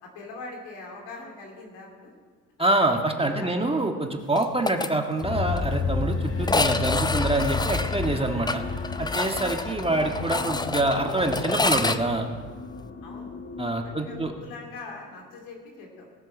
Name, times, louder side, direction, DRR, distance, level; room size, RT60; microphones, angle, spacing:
voice 1, 0.0-2.1 3.2-3.6 13.0-13.3 14.0-16.1, left 3 dB, 75° left, 0 dB, 3.5 m, -42 dB
voice 2, 2.6-8.6 9.0-12.3 13.6-14.3, right 2 dB, 15° right, 3 dB, 1.6 m, -26 dB
sound 1, 4.4-4.9 5.2-5.3 5.6-5.7 6.4-12.0, left 3 dB, 10° left, 0.6 m, -28 dB
sound 2, 5.2-14.4, left 5 dB, 35° left, 1.4 m, -32 dB
18.5 x 7.5 x 6.1 m, 1.5 s
supercardioid pair, 65°, 41 cm